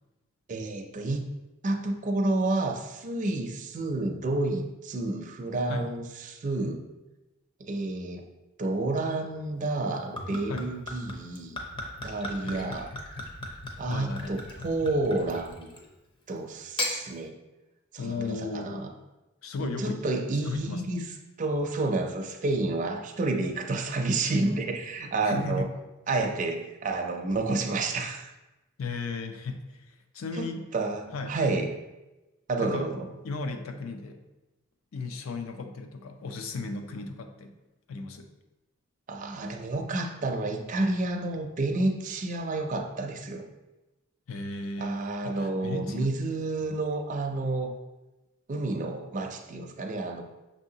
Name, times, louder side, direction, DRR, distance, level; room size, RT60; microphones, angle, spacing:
voice 1, 0.5-1.2 1.6-6.8 7.6-8.2 8.6-11.6 12.0-12.9 13.8-15.7 16.3-17.3 17.9-18.9 19.6-21.0 21.4-25.7 26.1-28.3 30.4-31.7 32.5-33.1 39.1-43.4 44.8-47.7 48.5-50.2, right 2 dB, 40° right, 3 dB, 0.4 m, -30 dB
Gurgling / Chink clink / Liquid, 9.8-15.9 16.6-17.0, left 1 dB, 25° left, 0.6 m, -37 dB
voice 2, 12.4-12.8 13.9-14.3 18.0-18.9 19.4-20.0 20.4-20.8 25.2-25.7 28.8-29.6 29.9-30.7 31.1-31.4 32.6-32.9 33.2-34.2 34.9-37.5 37.9-38.3 44.3-46.1, left 3 dB, 80° left, 5 dB, 0.5 m, -35 dB
6.1 x 2.7 x 2.7 m, 1.0 s
head